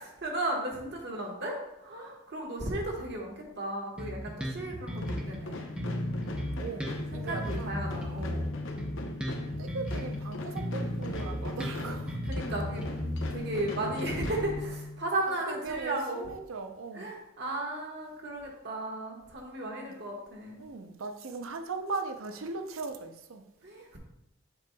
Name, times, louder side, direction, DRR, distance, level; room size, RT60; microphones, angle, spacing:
voice 1, 0.0-5.7 7.2-8.4 12.2-12.9 13.3-16.2 16.9-20.6 23.6-24.0, right 1 dB, 55° right, 1.3 m, -35 dB
Bass guitar, 4.0-5.4 5.8-10.2 10.6-13.6, equal, 5° right, 0.7 m, -35 dB
sound 1, 5.0-15.2, left 2 dB, 65° left, 0.7 m, -38 dB
voice 2, 6.6-7.8 9.6-12.2 15.3-15.4 15.6-17.1 20.6-23.4, right 4 dB, 85° right, 0.6 m, -38 dB
7.6 x 6.0 x 2.3 m
head